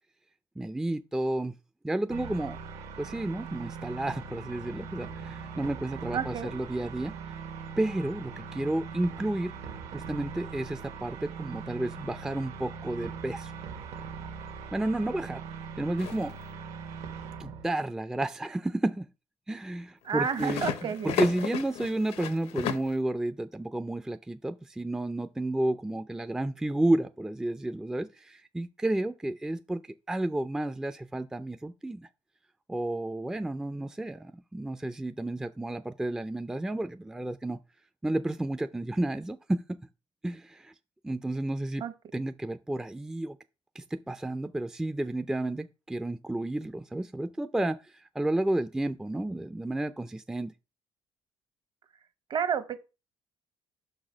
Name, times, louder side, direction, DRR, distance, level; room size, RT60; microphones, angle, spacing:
voice 1, 0.6-1.6 1.8-2.6 3.0-7.2 7.8-9.5 9.9-13.5 14.7-15.4 15.8-16.3 17.4-19.1 19.5-32.1 32.7-37.6 38.0-39.8 40.2-40.7 41.0-41.8 42.1-43.4 43.8-50.5, right 1 dB, 5° right, 0.4 m, -31 dB
sound 1, 2.1-17.7, right 5 dB, 75° right, 1.3 m, -41 dB
voice 2, 6.1-6.6 20.0-21.1 41.8-41.9 52.3-52.8, right 7 dB, 50° right, 0.9 m, -30 dB
sound 2, 16.0-16.4 20.1-22.9, left 8 dB, 75° left, 0.8 m, -34 dB
5.8 x 4.1 x 5.0 m
cardioid pair, 100°, 11 cm